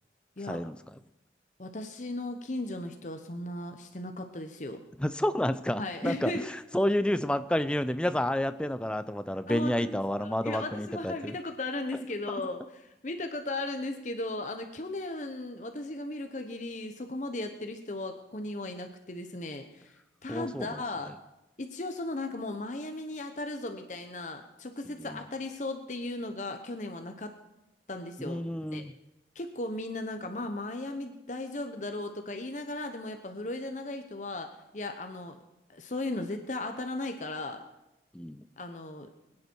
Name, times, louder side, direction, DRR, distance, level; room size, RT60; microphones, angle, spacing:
voice 1, 0.4-0.8 5.0-6.4 6.7-11.4 20.3-20.8 25.0-25.2 28.2-28.9 38.1-38.4, left 1 dB, 5° left, 12 dB, 0.4 m, -30 dB
voice 2, 1.6-4.8 5.8-6.5 9.5-21.1 21.6-27.3 27.9-28.5 28.7-28.8 29.3-35.4 35.7-37.6 38.6-39.1, left 2 dB, 45° left, 6 dB, 0.9 m, -36 dB
22.0 x 9.7 x 4.6 m, 0.94 s
head